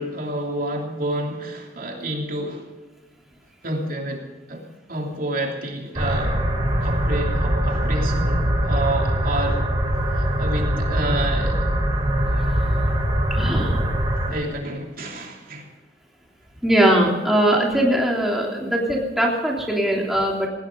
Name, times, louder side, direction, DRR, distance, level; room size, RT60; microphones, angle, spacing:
voice 1, 0.0-2.7 3.6-6.4 6.8-9.7 10.1-11.6 14.3-15.7, right 1 dB, 50° right, 1 dB, 3.1 m, -29 dB
sound 1, 6.0-14.3, equal, 25° right, 3.5 m, -22 dB
voice 2, 13.3-13.8 16.6-20.5, right 1 dB, ahead, -3 dB, 3.3 m, -20 dB
19.0 x 17.5 x 4.0 m, 1.3 s
head